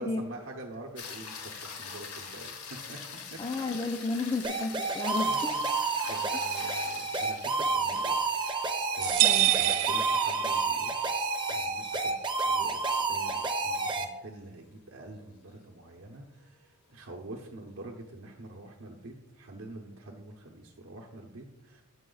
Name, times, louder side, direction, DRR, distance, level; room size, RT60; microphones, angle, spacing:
voice 1, 0.0-3.0 3.3-3.4 4.0-4.3 5.2-5.6 6.0-8.6 9.0-10.9 11.5-21.8, right 2 dB, 65° right, 0 dB, 0.8 m, -46 dB
sound 1, 1.0-13.4 17.8-17.9, left 6 dB, 80° left, 1.3 m, -45 dB
voice 2, 3.4-5.5 6.6-6.9 9.2-9.6, left 3 dB, 20° left, 4 dB, 0.4 m, -33 dB
sound 2, 4.4-14.1, right 3 dB, 20° right, 0.6 m, -30 dB
sound 3, 9.0-10.9, right 17 dB, 85° right, 0.3 m, -26 dB
7.5 x 5.9 x 3.9 m, 0.98 s
head